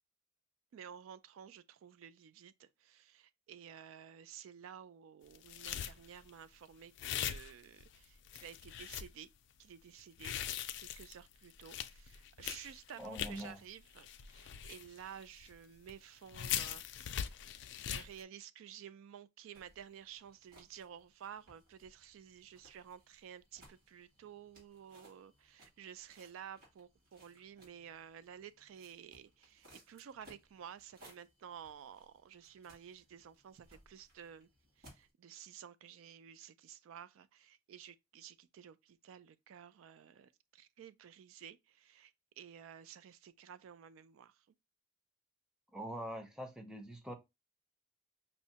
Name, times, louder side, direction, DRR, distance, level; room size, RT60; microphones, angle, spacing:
voice 1, 0.7-9.3 9.6-10.3 10.8-17.3 17.9-34.5 34.8-44.5, right 8 dB, 75° right, 0.3 m, -53 dB
sound 1, 5.3-6.3 7.0-8.0 8.3-9.1 10.0-13.5 13.9-15.5 15.9-16.0 16.3-18.2, left 10 dB, 60° left, 0.3 m, -41 dB
voice 2, 13.0-13.6 45.7-47.1, equal, 5° right, 0.6 m, -44 dB
sound 2, 19.5-35.1, right 1 dB, 45° right, 2.3 m, -64 dB
5.4 x 2.1 x 2.7 m
head